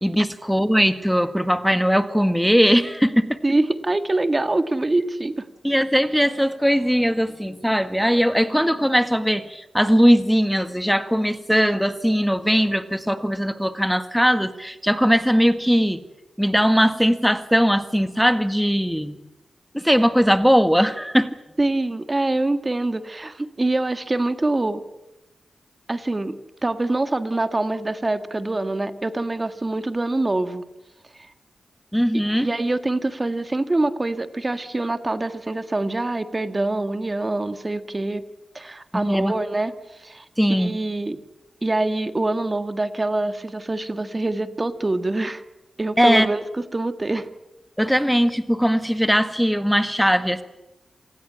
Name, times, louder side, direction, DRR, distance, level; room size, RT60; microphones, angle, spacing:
voice 1, 0.0-3.4 5.6-16.0 16.4-19.2 19.7-21.4 31.9-32.5 38.9-39.3 40.4-40.7 46.0-46.3 47.8-50.4, equal, ahead, 10 dB, 1.8 m, -19 dB
voice 2, 3.4-5.5 21.6-24.8 25.9-26.3 26.6-30.6 31.1-31.3 32.4-38.2 38.6-41.2 41.6-45.4 45.8-46.4 46.7-47.3, right 2 dB, 30° right, 10 dB, 1.7 m, -25 dB
27.0 x 19.0 x 8.8 m, 0.94 s
cardioid pair, 55°, 0 cm